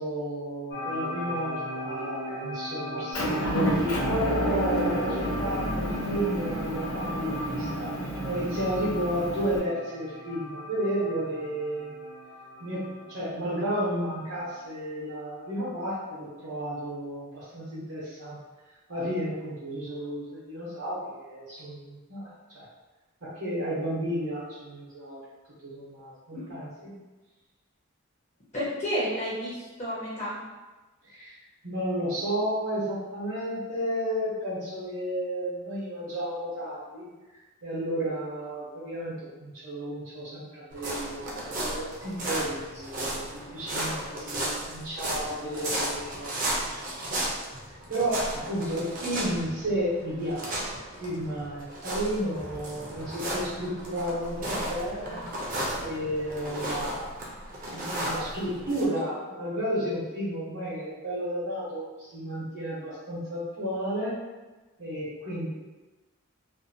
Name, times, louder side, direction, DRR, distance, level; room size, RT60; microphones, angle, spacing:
voice 1, 0.0-7.9 8.2-12.0 12.6-18.4 18.9-22.7 23.2-25.2 25.6-27.0 31.0-47.3 47.9-50.6 51.0-55.2 55.8-64.2 64.8-65.5, equal, 70° right, -9 dB, 0.8 m, -32 dB
sound 1, 0.7-14.7, left 1 dB, 60° left, 0.9 m, -39 dB
Motor vehicle (road) / Engine, 3.1-9.6, right 1 dB, 90° left, 0.7 m, -30 dB
voice 2, 28.5-30.4 54.4-54.5 55.1-55.3, equal, 30° left, -8 dB, 0.6 m, -31 dB
sound 2, 40.7-58.9, right 1 dB, 40° right, 0.5 m, -34 dB
2.6 x 2.2 x 2.6 m, 1.2 s
head